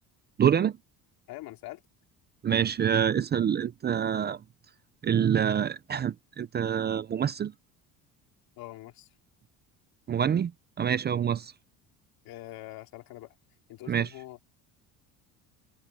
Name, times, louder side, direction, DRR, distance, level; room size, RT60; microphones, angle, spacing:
voice 1, 0.4-0.7 2.4-4.4 5.0-7.5 10.1-10.5 10.8-11.5 13.9-14.1, right 8 dB, 30° right, 0.6 m, -26 dB
voice 2, 1.3-1.8 8.6-9.1 12.3-13.3 13.7-14.5, left 17 dB, 70° left, 3.4 m, -44 dB
cardioid pair, 135°, 36 cm